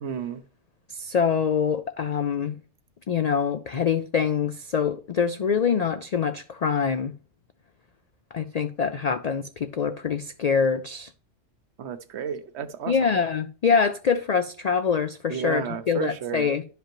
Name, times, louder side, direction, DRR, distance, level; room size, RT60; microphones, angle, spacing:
voice 1, 0.0-0.4 11.8-13.1 15.3-16.5, right 7 dB, 65° right, 0.9 m, -32 dB
voice 2, 0.9-2.6 3.1-7.1 8.3-11.1 12.9-16.6, left 6 dB, 80° left, 0.3 m, -25 dB
11.5 x 5.2 x 3.0 m
omnidirectional pair, 1.3 m